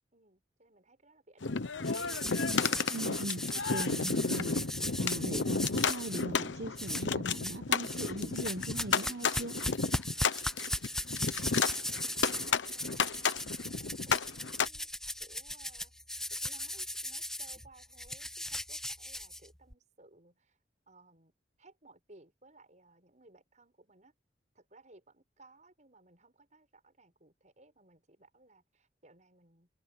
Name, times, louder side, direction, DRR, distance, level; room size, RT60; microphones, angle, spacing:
voice 1, 0.1-2.3 11.6-13.1 13.7-14.9 15.2-15.9 16.3-20.6 20.9-21.3 21.6-24.2 24.5-29.7, right 2 dB, 40° right, 7.3 m, -60 dB
sound 1, 1.4-14.7, left 5 dB, 85° left, 0.9 m, -32 dB
sound 2, 1.8-6.2 6.8-7.6 7.8-19.7, left 1 dB, 5° left, 0.8 m, -38 dB
voice 2, 2.9-3.4 3.7-9.6, right 1 dB, 65° right, 1.3 m, -40 dB
head